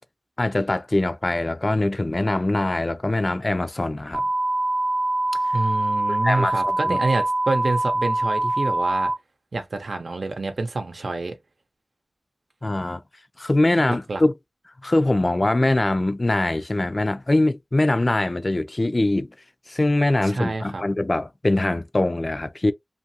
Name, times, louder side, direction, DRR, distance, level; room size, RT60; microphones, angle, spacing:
voice 1, 0.4-4.2 6.2-7.0 12.6-13.0 13.4-14.3 14.8-19.3 19.7-22.7, left 2 dB, 40° left, 0.4 m, -22 dB
sound 1, 4.1-9.1, right 2 dB, 40° right, 0.9 m, -24 dB
voice 2, 5.5-9.1 9.5-11.4 13.9-14.2 20.2-20.8, right 3 dB, 80° right, 0.7 m, -27 dB
2.7 x 2.4 x 2.7 m
wide cardioid pair, 65°, 0 cm